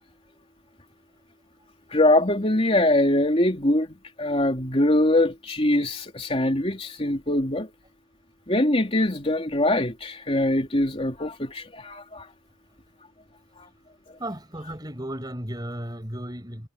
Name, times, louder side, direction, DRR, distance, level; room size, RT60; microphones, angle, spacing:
voice 1, 1.9-3.9 4.2-7.7 8.5-12.3 13.6-13.7 14.1-14.2, left 1 dB, 30° left, 3.4 m, -23 dB
voice 2, 14.2-16.7, right 1 dB, 20° right, 7.2 m, -34 dB
head